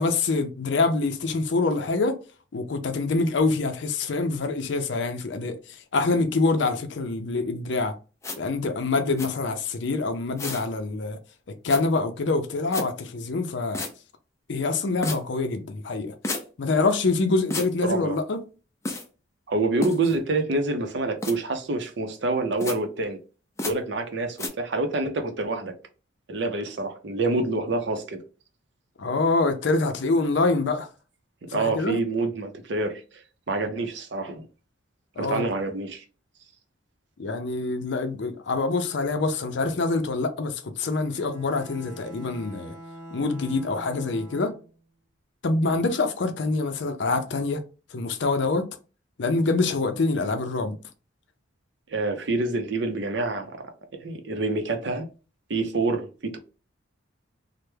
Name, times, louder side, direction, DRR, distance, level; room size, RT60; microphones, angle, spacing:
voice 1, 0.0-2.2 2.5-8.0 8.4-11.2 11.5-13.8 14.5-16.1 16.6-18.4 29.0-30.9 31.5-32.0 35.2-35.5 37.2-42.8 43.1-44.5 45.4-47.6 47.9-48.7 49.2-50.8, left 3 dB, 65° left, 0.5 m, -25 dB
sound 1, 8.2-8.4 9.2-9.3 10.4-10.7 11.7-11.8 12.7-12.9 13.7-13.9 15.0-15.2 16.2-16.4 17.5-17.7 18.8-19.0 19.8-20.1 21.2-21.3 22.6-22.8 23.6-23.7 24.4-24.5, left 2 dB, 15° left, 0.4 m, -30 dB
voice 2, 17.8-18.2 19.5-23.2 23.6-25.7 26.3-28.2 31.5-34.5 35.2-36.0 51.9-53.7 54.0-55.1 55.5-56.4, right 2 dB, 60° right, 0.6 m, -27 dB
Bowed string instrument, 41.1-44.9, right 1 dB, 15° right, 0.8 m, -44 dB
3.3 x 2.1 x 3.2 m
head